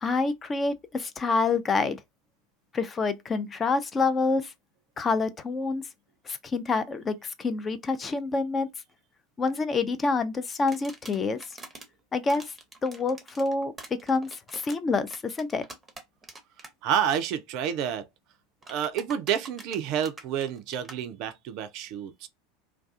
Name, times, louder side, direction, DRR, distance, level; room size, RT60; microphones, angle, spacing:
voice 1, 0.0-2.0 2.7-4.5 5.0-5.8 6.3-8.7 9.4-11.4 12.1-12.4 12.8-15.6, left 4 dB, 25° left, 0.4 m, -27 dB
sound 1, 10.7-11.9 12.3-16.7 17.0-17.2 18.6-21.0, right 2 dB, 15° right, 0.6 m, -45 dB
voice 2, 16.8-18.1 18.7-22.3, right 9 dB, 50° right, 0.3 m, -29 dB
2.3 x 2.3 x 2.4 m
figure-of-eight pair, 80°, 0 cm